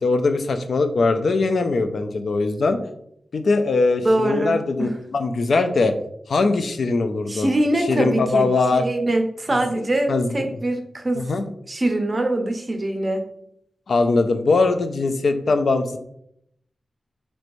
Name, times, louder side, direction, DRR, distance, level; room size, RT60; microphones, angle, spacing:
voice 1, 0.0-2.8 3.3-5.9 6.3-7.5 7.9-8.8 9.5-10.5 11.2-11.5 13.9-16.0, left 3 dB, 75° left, 8 dB, 0.3 m, -21 dB
voice 2, 4.0-4.9 7.3-11.3 11.7-13.2, right 1 dB, 35° right, 4 dB, 0.5 m, -23 dB
3.1 x 3.1 x 2.5 m, 0.72 s
wide cardioid pair, 95°, 0 cm